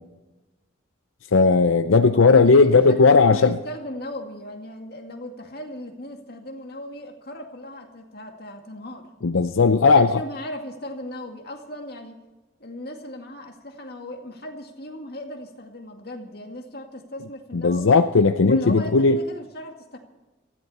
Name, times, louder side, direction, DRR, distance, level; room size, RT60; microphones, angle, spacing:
voice 1, 1.3-3.6 9.2-10.2 17.5-19.2, left 4 dB, 80° left, 9 dB, 0.6 m, -16 dB
voice 2, 2.1-9.1 9.9-12.2 12.6-18.0 18.5-20.0, left 1 dB, 50° left, 3 dB, 2.2 m, -37 dB
18.5 x 14.5 x 4.3 m, 1.1 s
head